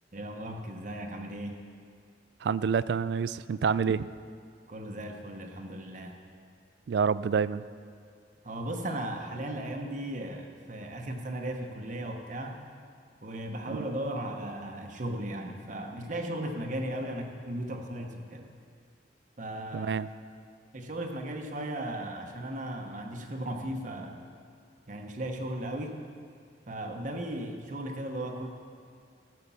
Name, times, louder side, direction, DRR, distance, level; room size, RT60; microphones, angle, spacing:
voice 1, 0.1-1.5 4.7-6.2 8.4-12.6 13.2-18.5 19.4-20.0 20.7-24.2 24.9-26.0 26.7-28.5, right 1 dB, 45° right, 2 dB, 1.0 m, -36 dB
voice 2, 2.4-4.1 6.9-7.6 13.7-13.8 19.7-20.1, right 6 dB, 70° right, 16 dB, 0.3 m, -27 dB
14.0 x 6.8 x 7.1 m, 2.1 s
head